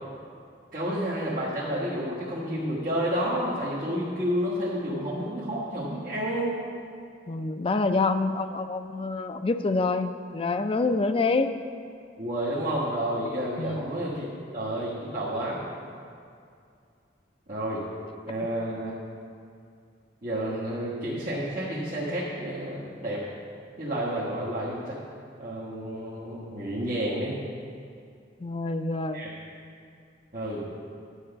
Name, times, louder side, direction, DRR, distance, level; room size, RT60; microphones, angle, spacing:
voice 1, 0.7-6.6 12.2-15.6 17.5-17.8 18.3-18.9 20.2-23.2 23.8-25.0 25.4-27.4 29.1-29.3 30.3-30.6, equal, 45° right, -9 dB, 1.4 m, -30 dB
voice 2, 7.3-11.5 13.6-13.9 28.4-29.2, left 3 dB, 30° left, 8 dB, 0.3 m, -26 dB
9.9 x 4.7 x 6.8 m, 2.4 s
head